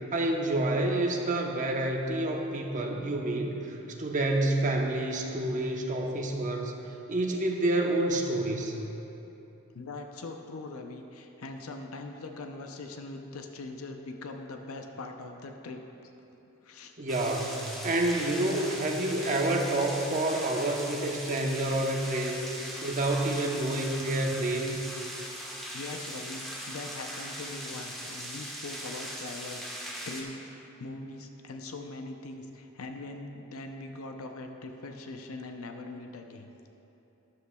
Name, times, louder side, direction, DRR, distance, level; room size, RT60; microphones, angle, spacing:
voice 1, 0.1-6.7 7.1-8.8 17.0-24.8, right 1 dB, 35° right, 1 dB, 0.9 m, -28 dB
voice 2, 9.7-16.1 16.6-17.0 25.7-36.5, left 2 dB, 70° left, 4 dB, 0.6 m, -41 dB
sound 1, 17.1-30.2, equal, ahead, 1.2 m, -40 dB
13.0 x 11.0 x 2.3 m, 3.0 s
head